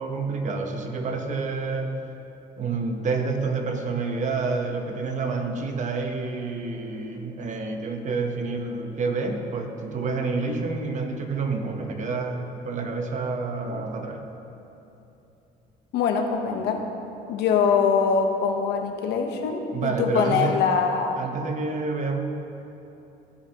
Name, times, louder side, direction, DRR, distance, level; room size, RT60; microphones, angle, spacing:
voice 1, 0.0-2.0 2.6-14.3 19.7-20.6 21.2-22.2, right 4 dB, 45° right, 4 dB, 1.1 m, -28 dB
voice 2, 15.9-16.9 17.3-21.2, left 6 dB, 80° left, 4 dB, 1.0 m, -23 dB
15.5 x 7.5 x 3.0 m, 2.9 s
cardioid pair, 110°, 17 cm